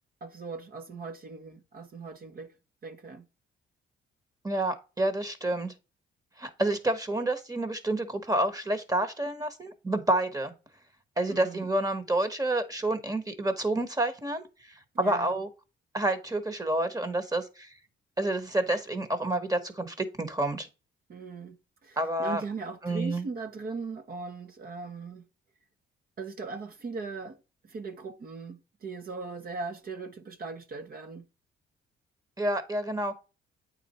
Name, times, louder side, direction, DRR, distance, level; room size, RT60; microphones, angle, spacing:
voice 1, 0.2-2.5 2.8-3.2 11.3-11.7 14.9-15.4 21.1-21.6 21.8-25.2 26.2-31.2, right 4 dB, 50° right, 1.0 m, -39 dB
voice 2, 4.4-5.7 6.4-10.5 11.2-14.4 15.0-15.5 15.9-17.7 18.2-20.7 22.0-22.4 22.8-23.3 32.4-33.2, right 1 dB, 20° right, 1.2 m, -29 dB
8.4 x 4.2 x 4.2 m
cardioid pair, 90°, 20 cm